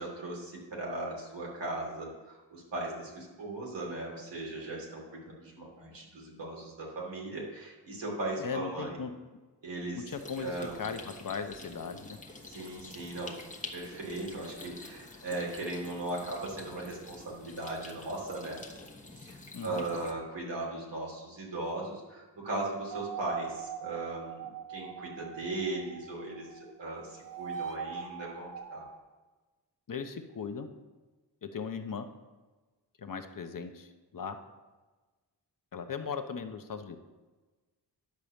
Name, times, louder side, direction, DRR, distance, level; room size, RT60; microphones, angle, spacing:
voice 1, 0.0-9.0 9.6-10.0 10.4-10.8 11.8-12.0 12.4-13.4 13.7-18.6 19.1-28.8, right 2 dB, 85° right, -3 dB, 3.0 m, -38 dB
voice 2, 8.4-9.1 10.0-12.2 19.5-19.9 29.9-30.7 31.4-32.1 33.0-34.4 35.7-37.0, left 6 dB, 50° left, 7 dB, 0.9 m, -38 dB
sound 1, 10.1-20.1, left 2 dB, 20° left, 1.2 m, -48 dB
sound 2, 22.9-26.7 27.0-29.0, right 7 dB, 50° right, 0.7 m, -42 dB
10.5 x 4.9 x 7.1 m, 1.3 s
cardioid pair, 75°, 42 cm